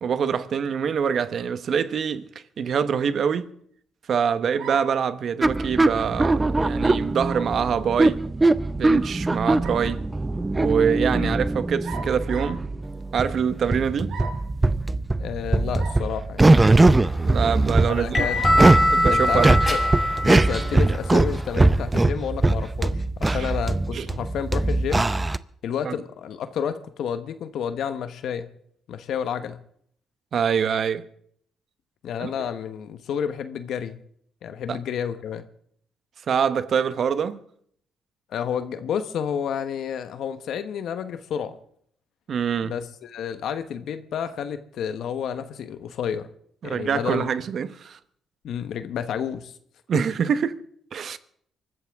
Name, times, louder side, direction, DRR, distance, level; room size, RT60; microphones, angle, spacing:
voice 1, 0.0-2.2 2.6-3.5 4.1-8.2 8.7-10.0 10.6-12.6 13.1-14.2 17.2-18.2 18.9-19.5 23.3-23.5 23.9-24.1 25.8-26.0 30.3-31.0 32.2-32.3 34.7-34.8 36.3-37.4 42.3-42.7 46.6-48.0 49.9-50.6 50.9-51.2, right 7 dB, 55° right, 1.1 m, -25 dB
sound 1, 4.6-5.0 7.3-7.6 9.4-10.0 11.8-12.6 14.1-14.5 15.8-16.0 16.6-16.7 18.4-18.7, right 5 dB, 75° right, 2.8 m, -37 dB
sound 2, 5.4-25.4, right 2 dB, 20° right, 0.6 m, -21 dB
voice 2, 15.2-16.7 17.9-18.6 19.1-19.8 20.2-25.1 25.6-28.5 28.9-29.6 32.0-34.0 34.4-35.5 38.3-41.6 42.6-46.3 46.6-47.3 48.4-49.5, left 8 dB, 70° left, 1.1 m, -30 dB
sound 3, 17.0-21.9, left 1 dB, 30° left, 6.8 m, -24 dB
24.5 x 14.0 x 3.6 m
cardioid pair, 90°, 0 cm